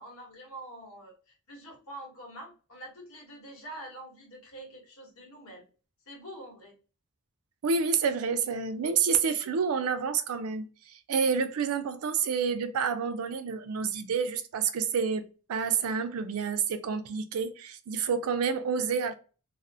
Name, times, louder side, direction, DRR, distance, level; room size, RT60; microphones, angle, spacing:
voice 1, 0.0-5.7 6.1-6.8, right 1 dB, 75° left, 1.0 m, -46 dB
voice 2, 7.6-19.1, right 6 dB, 85° right, 0.4 m, -29 dB
2.4 x 2.0 x 2.5 m
head